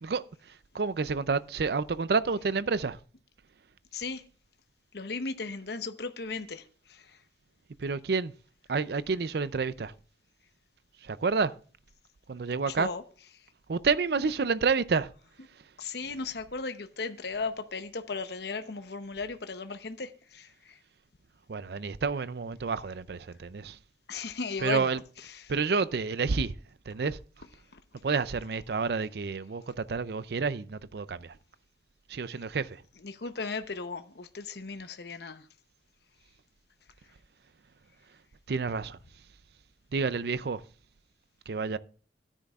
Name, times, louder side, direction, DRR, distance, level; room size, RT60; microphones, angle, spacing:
voice 1, 0.0-3.0 7.8-8.3 8.7-9.9 11.0-11.5 12.3-12.9 13.7-15.1 21.5-23.8 24.6-25.0 25.5-26.5 26.9-27.2 28.0-31.4 32.1-32.8 38.5-39.0 39.9-40.6 41.5-41.8, right 4 dB, 60° right, 0.5 m, -29 dB
voice 2, 3.9-4.2 4.9-7.2 12.7-13.0 13.4-13.5 15.8-20.8 24.1-24.9 25.3-25.5 27.7-27.8 33.0-35.5, left 4 dB, 65° left, 0.8 m, -36 dB
13.5 x 10.0 x 2.4 m
head